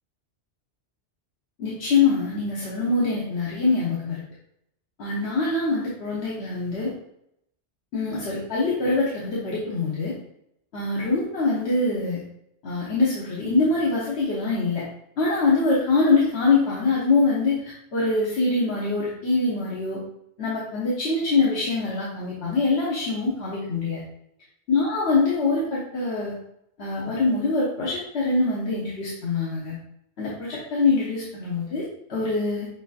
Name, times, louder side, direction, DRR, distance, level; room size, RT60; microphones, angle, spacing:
voice 1, 1.6-4.2 5.0-6.9 7.9-10.1 10.7-12.2 12.6-14.8 15.2-17.6 17.9-20.0 20.4-24.0 24.7-26.3 26.8-29.8 30.2-32.7, left 3 dB, 65° left, -7 dB, 1.2 m, -24 dB
6.1 x 2.6 x 2.4 m, 0.75 s
omnidirectional pair, 1.2 m